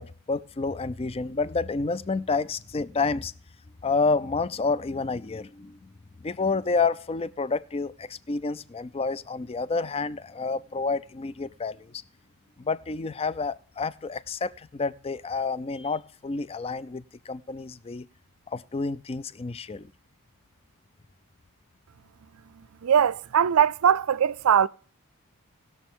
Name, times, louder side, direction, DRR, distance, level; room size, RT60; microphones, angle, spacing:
voice 1, 0.0-3.3 3.8-5.9 6.2-12.0 12.6-18.1 18.5-19.9, left 4 dB, 25° left, 0.4 m, -29 dB
voice 2, 22.6-24.7, right 8 dB, 70° right, 0.4 m, -21 dB
19.5 x 6.8 x 3.6 m
head